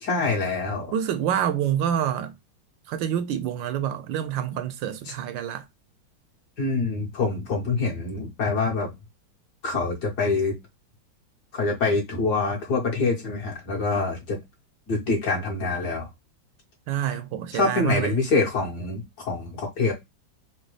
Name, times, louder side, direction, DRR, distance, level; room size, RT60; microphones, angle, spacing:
voice 1, 0.0-0.9 6.6-8.9 9.6-10.5 11.5-14.4 14.9-16.1 17.5-19.9, left 3 dB, 55° left, 2.1 m, -25 dB
voice 2, 0.9-2.3 2.9-5.6 16.9-18.2, right 9 dB, 75° right, 1.3 m, -27 dB
4.8 x 2.3 x 3.1 m
omnidirectional pair, 2.1 m